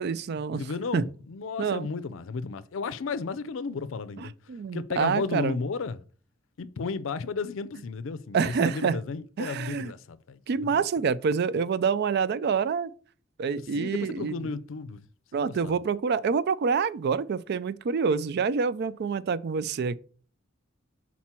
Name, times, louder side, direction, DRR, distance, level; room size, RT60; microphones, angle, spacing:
voice 1, 0.0-0.7 0.9-1.1 1.6-1.9 4.2-5.6 8.3-9.0 9.4-9.9 10.5-12.9 13.4-14.5 15.3-20.0, right 5 dB, 55° right, 0.4 m, -27 dB
voice 2, 0.5-4.3 4.7-6.0 6.6-10.7 13.7-15.0 15.4-15.8, left 4 dB, 75° left, 0.5 m, -33 dB
6.0 x 4.1 x 4.3 m
head